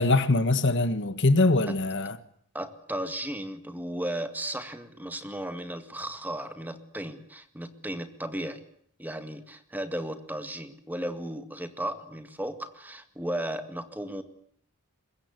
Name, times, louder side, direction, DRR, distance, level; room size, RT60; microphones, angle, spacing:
voice 1, 0.0-2.2, left 2 dB, 60° left, 1.3 m, -23 dB
voice 2, 2.5-8.6 9.0-14.2, right 1 dB, 10° right, 2.0 m, -35 dB
23.5 x 21.5 x 8.3 m
head